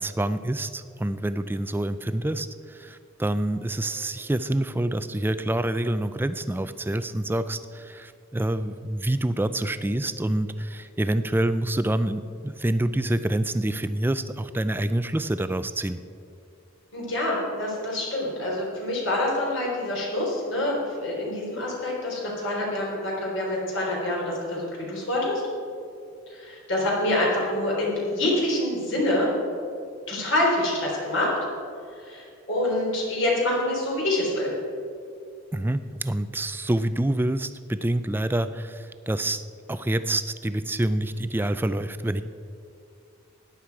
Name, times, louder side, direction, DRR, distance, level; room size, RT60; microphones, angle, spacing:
voice 1, 0.0-16.0 35.5-39.4 39.7-42.2, right 1 dB, 10° right, 12 dB, 0.4 m, -27 dB
voice 2, 16.9-25.4 26.3-29.3 30.1-31.4 31.9-34.5, left 1 dB, 65° left, -3 dB, 3.7 m, -26 dB
15.0 x 10.0 x 4.7 m, 2.5 s
head